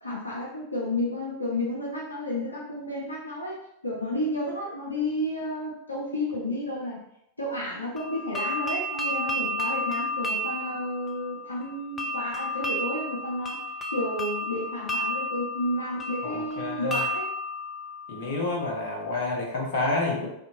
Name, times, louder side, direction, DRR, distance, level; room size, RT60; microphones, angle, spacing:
voice 1, 0.0-7.0 7.4-13.6 13.9-17.3, left 1 dB, 85° left, -4 dB, 0.6 m, -31 dB
sound 1, 8.0-18.8, left 1 dB, 15° left, 0.4 m, -32 dB
voice 2, 16.2-17.0 18.1-20.3, left 2 dB, 50° left, -1 dB, 0.7 m, -29 dB
2.7 x 2.6 x 2.8 m, 0.77 s
figure-of-eight pair, 90°, 0 cm